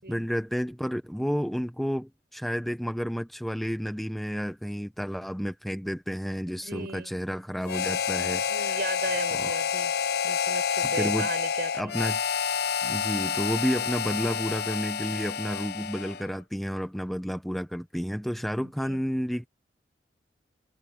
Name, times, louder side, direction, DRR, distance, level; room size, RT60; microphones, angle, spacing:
voice 1, 0.0-8.8 9.3-9.5 10.8-11.3 11.7-12.2 12.8-19.5, equal, ahead, 0.8 m, -31 dB
voice 2, 6.6-7.1 8.5-9.9 10.2-12.0 18.6-19.0, right 3 dB, 55° right, 6.0 m, -36 dB
Harmonica, 7.6-16.3, left 7 dB, 60° left, 0.7 m, -29 dB
head